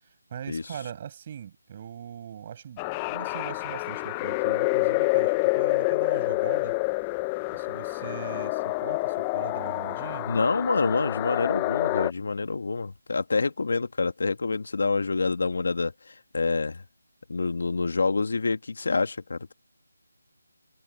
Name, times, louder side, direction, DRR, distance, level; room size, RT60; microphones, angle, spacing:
voice 1, 0.0-6.8 7.5-10.3, right 9 dB, 25° right, 6.0 m, -41 dB
sound 1, 2.8-12.1, left 25 dB, 15° left, 0.4 m, -27 dB
voice 2, 10.3-16.8 17.3-19.5, left 4 dB, 60° left, 1.8 m, -27 dB
figure-of-eight pair, 170°, 0 cm